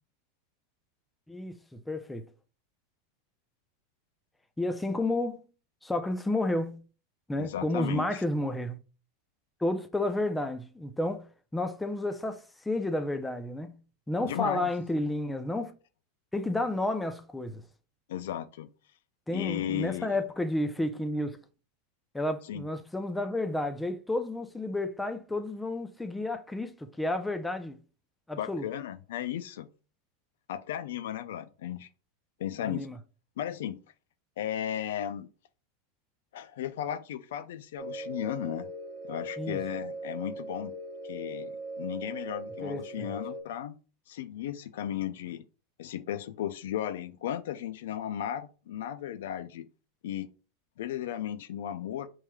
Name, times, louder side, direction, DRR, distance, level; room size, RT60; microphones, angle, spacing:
voice 1, 1.3-2.3 4.6-5.5 5.8-6.8 7.3-8.8 9.6-11.3 11.5-13.8 14.1-15.7 16.3-17.6 19.3-21.4 22.1-27.8 28.3-28.6 32.6-33.0 39.4-39.6 42.6-43.1, left 1 dB, 10° left, 0.5 m, -31 dB
voice 2, 7.4-8.2 14.2-14.7 18.1-18.7 19.3-20.2 22.5-22.6 28.4-29.7 30.5-31.9 32.4-32.9 33.4-33.8 34.4-35.3 36.3-38.7 39.1-40.7 41.0-43.8 44.1-45.4 45.8-49.7 50.0-50.3 50.8-52.1, left 10 dB, 75° left, 0.3 m, -35 dB
sound 1, 37.8-43.4, right 1 dB, 60° right, 0.8 m, -39 dB
5.5 x 3.1 x 2.3 m
hypercardioid pair, 105°, 0 cm